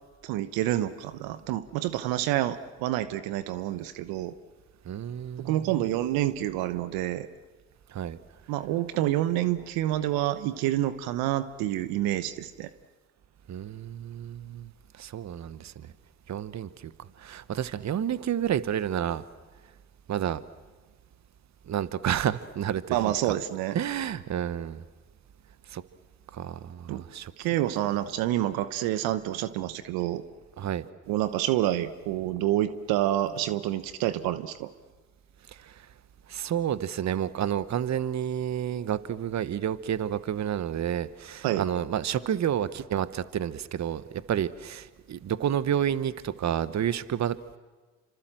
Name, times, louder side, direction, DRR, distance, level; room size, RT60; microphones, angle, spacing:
voice 1, 0.2-4.3 5.4-7.3 8.5-12.7 22.9-23.8 26.9-27.0 27.4-30.2 31.1-34.7 41.4-41.6, right 13 dB, 80° right, 13 dB, 1.0 m, -28 dB
voice 2, 4.8-5.9 7.9-8.2 13.5-14.7 15.0-15.9 16.3-16.9 17.2-19.2 20.1-20.4 21.7-23.1 23.7-24.8 25.7-25.8 26.3-27.3 30.6-30.9 35.5-35.9 36.3-47.4, right 9 dB, 50° right, 15 dB, 1.1 m, -30 dB
28.0 x 25.5 x 7.7 m, 1.3 s
hypercardioid pair, 55°, 36 cm